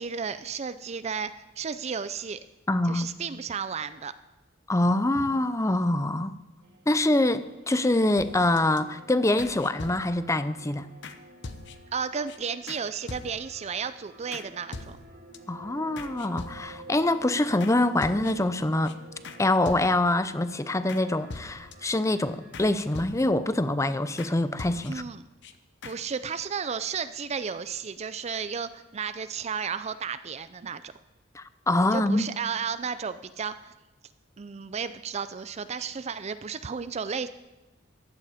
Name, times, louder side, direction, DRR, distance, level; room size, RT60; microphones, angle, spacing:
voice 1, 0.0-2.4 2.8-4.1 11.9-15.0 24.9-25.2 25.8-30.9 31.9-33.7 34.4-37.3, right 6 dB, 35° right, 12 dB, 0.4 m, -33 dB
voice 2, 2.7-3.1 4.7-6.3 6.9-10.9 15.5-19.0 19.4-25.0 31.3-32.3, left 1 dB, 15° left, 13 dB, 0.6 m, -25 dB
sound 1, 6.6-23.5, right 2 dB, 65° right, 2.8 m, -50 dB
sound 2, 8.2-8.8 9.4-10.3 11.0-11.2 11.4-12.0 12.3-12.4 12.7-12.8 13.1-13.6 14.3-14.5 14.7-15.4 16.0-16.9 17.6-17.7 18.0-18.5 18.8-18.9 19.2-19.4 19.7-20.2 20.9-21.0 21.3-21.9 22.5-23.5 24.2-24.3 24.6-25.1 25.4-25.5 25.8-26.0, left 3 dB, 65° left, 0.9 m, -42 dB
15.5 x 11.5 x 5.0 m, 1.1 s
head